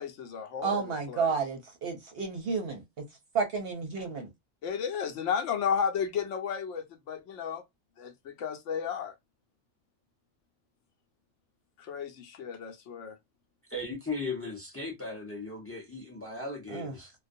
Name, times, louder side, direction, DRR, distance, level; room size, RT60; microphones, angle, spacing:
voice 1, 0.0-1.3 4.6-7.6 8.0-9.1 11.8-13.2, left 7 dB, 70° left, 0.9 m, -33 dB
voice 2, 0.6-3.0 3.3-4.3 16.7-16.9, right 5 dB, 60° right, 0.7 m, -31 dB
voice 3, 13.7-17.1, left 3 dB, 20° left, 0.4 m, -37 dB
2.3 x 2.1 x 2.5 m
omnidirectional pair, 1.4 m